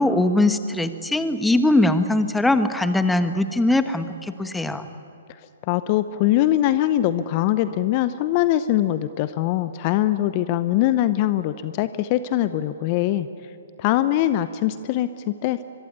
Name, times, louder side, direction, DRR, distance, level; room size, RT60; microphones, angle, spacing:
voice 1, 0.0-4.8, left 2 dB, 5° left, 10 dB, 1.3 m, -21 dB
voice 2, 5.7-13.3 13.8-15.6, left 13 dB, 35° left, 13 dB, 0.8 m, -22 dB
24.5 x 23.0 x 9.6 m, 2.6 s
figure-of-eight pair, 125°, 0 cm